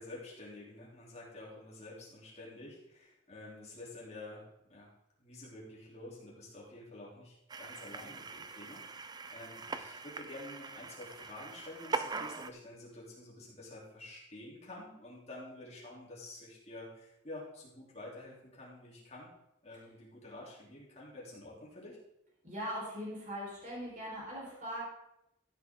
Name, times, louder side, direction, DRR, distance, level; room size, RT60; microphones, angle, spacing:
voice 1, 0.0-4.4 4.7-4.9 5.2-19.3 19.6-22.0, left 2 dB, 30° left, -5 dB, 3.3 m, -49 dB
sound 1, 7.5-12.5, right 4 dB, 20° right, 0.4 m, -41 dB
voice 2, 22.4-24.9, equal, 40° right, -5 dB, 4.5 m, -40 dB
14.0 x 8.4 x 3.8 m, 0.84 s
head